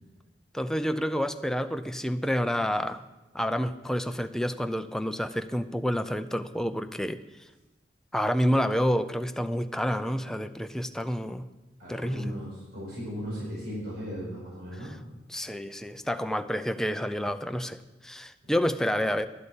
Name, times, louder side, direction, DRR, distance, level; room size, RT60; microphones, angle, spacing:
voice 1, 0.5-3.0 3.3-7.2 8.1-11.5 11.9-12.4 15.3-19.3, equal, 5° left, 9 dB, 0.5 m, -29 dB
voice 2, 11.8-14.9, equal, 70° right, -5 dB, 4.9 m, -37 dB
11.5 x 8.2 x 7.2 m, 1.1 s
head